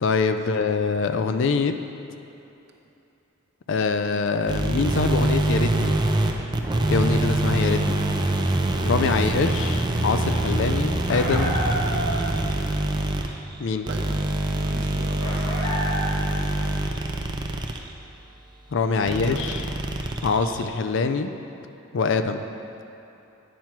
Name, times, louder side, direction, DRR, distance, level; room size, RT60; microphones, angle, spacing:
voice 1, 0.0-1.7 3.7-6.0 6.9-8.0 8.8-11.6 13.6-13.9 18.7-19.6 20.2-21.3 21.9-22.4, left 4 dB, 60° left, 8 dB, 0.4 m, -24 dB
sound 1, 4.5-17.9 19.1-20.6, right 2 dB, 20° right, 0.4 m, -24 dB
voice 2, 8.9-9.3 13.8-15.7 18.8-19.6, right 2 dB, 55° right, 1 dB, 0.8 m, -40 dB
sound 2, 11.1-12.4 15.2-16.4, equal, 85° left, 1.5 m, -29 dB
9.3 x 5.8 x 4.5 m, 2.9 s
head